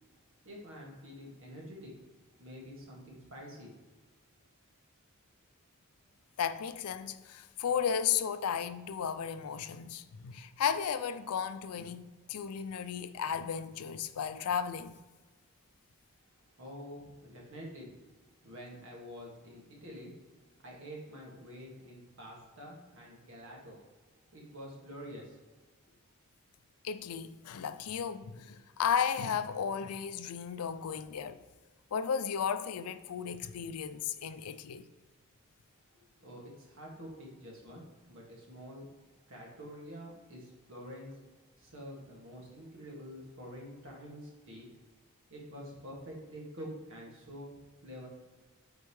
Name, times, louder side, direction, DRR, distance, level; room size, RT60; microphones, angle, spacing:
voice 1, 0.5-1.9 2.4-3.7 16.6-17.9 18.4-20.1 20.6-23.8 24.3-25.4 36.0-38.9 39.3-41.2 41.6-44.7 45.3-48.1, equal, 65° right, 1.9 m, -47 dB
voice 2, 6.4-15.0 26.8-31.4 31.9-34.9, left 7 dB, 85° left, 0.4 m, -34 dB
8.5 x 4.5 x 3.1 m
head